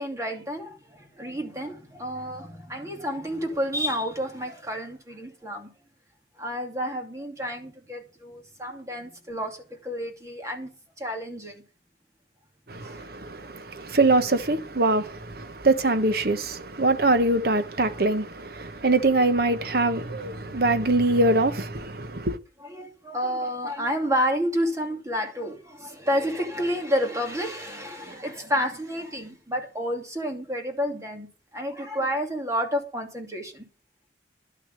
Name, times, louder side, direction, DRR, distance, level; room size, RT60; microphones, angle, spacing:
voice 1, 0.0-5.7 6.4-10.7 11.0-11.6 12.8-13.0 22.6-31.3 31.5-33.7, equal, 20° right, 2.6 m, -30 dB
voice 2, 12.7-22.4, right 2 dB, 60° right, 1.2 m, -23 dB
11.5 x 6.5 x 8.3 m
head